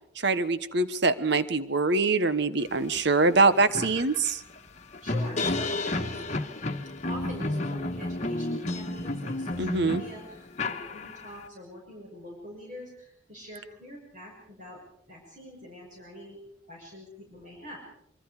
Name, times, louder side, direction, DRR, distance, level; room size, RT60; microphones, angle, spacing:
voice 1, 0.2-4.4 9.6-10.0, right 3 dB, 60° right, 13 dB, 1.2 m, -24 dB
sound 1, 3.0-3.1 3.4-11.4, left 2 dB, 35° left, 1.4 m, -32 dB
voice 2, 5.0-6.2 7.1-14.8 15.1-16.4 16.7-17.8, equal, 40° right, -1 dB, 5.9 m, -44 dB
25.5 x 24.0 x 5.0 m, 0.75 s
head